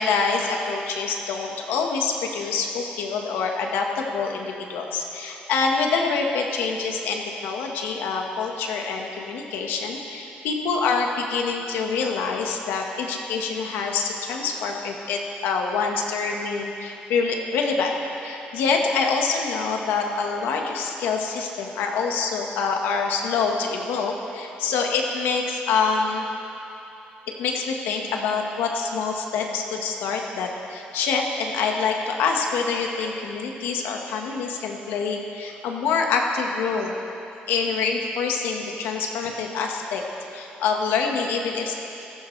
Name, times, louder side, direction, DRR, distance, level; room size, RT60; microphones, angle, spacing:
voice 1, 0.0-18.0 18.2-26.3 27.4-36.9 37.5-40.0 40.3-41.7, left 5 dB, 90° left, 2 dB, 1.5 m, -26 dB
18.0 x 14.5 x 3.3 m, 2.9 s
cardioid pair, 95°, 4 cm